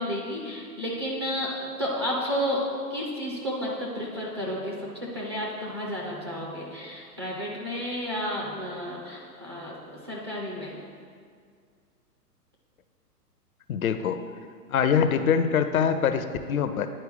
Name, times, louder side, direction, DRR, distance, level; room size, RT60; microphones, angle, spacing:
voice 1, 0.0-2.6 2.9-4.7 5.1-10.8, equal, 20° right, -5 dB, 0.4 m, -32 dB
voice 2, 13.7-14.2 14.7-16.9, left 7 dB, 60° left, 10 dB, 0.5 m, -24 dB
10.0 x 4.4 x 3.3 m, 2.1 s
figure-of-eight pair, 115°, 49 cm